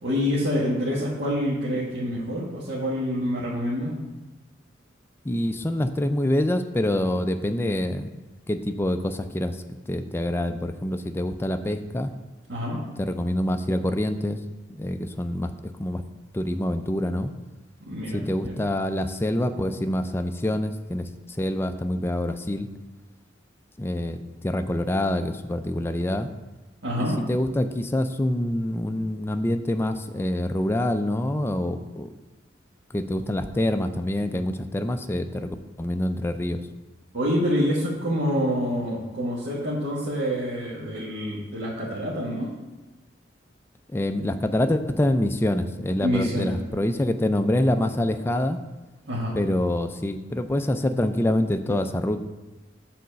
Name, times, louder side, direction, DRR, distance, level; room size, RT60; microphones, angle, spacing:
voice 1, 0.0-4.0 12.5-12.8 17.9-18.6 26.8-27.2 37.1-42.5 46.0-46.5 49.1-49.4, equal, 65° right, -8 dB, 1.5 m, -27 dB
voice 2, 5.2-8.1 8.5-9.6 9.9-12.1 13.0-14.4 14.7-15.5 15.8-16.0 16.3-17.3 18.1-21.1 21.4-22.7 23.8-26.3 27.0-32.1 32.9-36.6 43.9-48.6 49.3-52.2, left 1 dB, 15° left, 8 dB, 0.4 m, -26 dB
6.9 x 4.0 x 6.3 m, 1.2 s
head